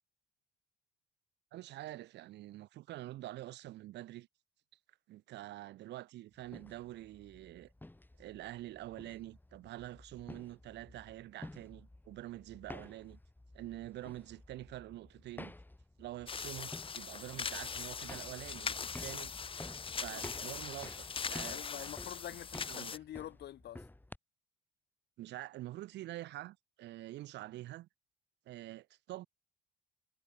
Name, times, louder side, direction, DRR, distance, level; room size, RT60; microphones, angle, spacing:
voice 1, 1.5-4.3 5.1-7.7 8.2-13.2 13.5-15.5 16.0-19.3 20.0-21.9 22.7-22.9 25.2-27.9 28.5-29.3, right 15 dB, 65° right, 5.6 m, -46 dB
sound 1, 6.4-24.2, left 1 dB, 10° left, 2.3 m, -52 dB
sound 2, 16.3-23.0, left 6 dB, 30° left, 0.8 m, -41 dB
voice 2, 21.5-23.8, left 12 dB, 60° left, 5.2 m, -46 dB
hypercardioid pair, 55°, 19 cm